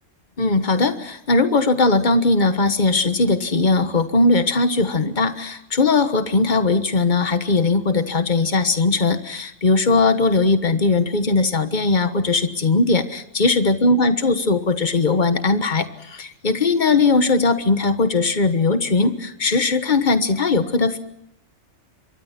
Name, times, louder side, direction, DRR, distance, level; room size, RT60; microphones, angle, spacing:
voice 1, 0.4-21.0, left 3 dB, 40° left, 10 dB, 1.5 m, -19 dB
27.0 x 23.0 x 5.9 m, 0.83 s
omnidirectional pair, 1.3 m